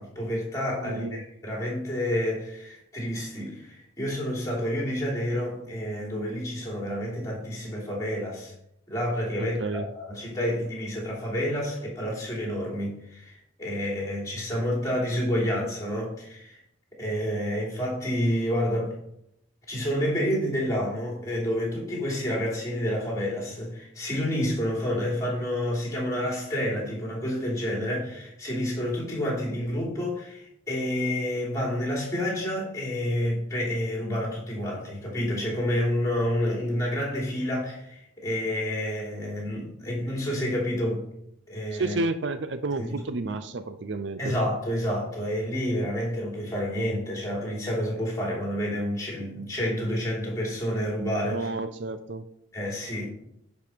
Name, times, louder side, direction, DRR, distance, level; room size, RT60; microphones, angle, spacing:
voice 1, 0.0-8.5 8.9-16.6 17.0-18.9 19.7-41.0 41.5-42.0 42.8-42.9 44.2-51.5 52.5-53.1, equal, 15° left, -3 dB, 3.2 m, -29 dB
voice 2, 0.8-1.2 9.6-9.9 41.7-44.4 51.3-52.2, right 3 dB, 60° right, 10 dB, 0.5 m, -31 dB
9.9 x 5.4 x 4.6 m, 0.75 s
head